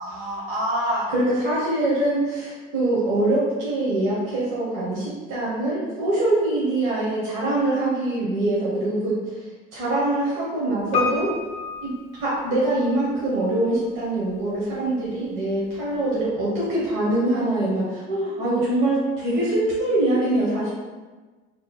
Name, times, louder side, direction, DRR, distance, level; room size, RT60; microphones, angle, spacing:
voice 1, 0.0-9.1 9.7-11.3 11.8-11.9 12.2-20.7, right 1 dB, 75° right, -7 dB, 1.0 m, -24 dB
Piano, 10.9-13.0 13.2-13.3, left 5 dB, 35° left, 0.5 m, -29 dB
3.1 x 2.3 x 4.0 m, 1.3 s
cardioid pair, 165°, 21 cm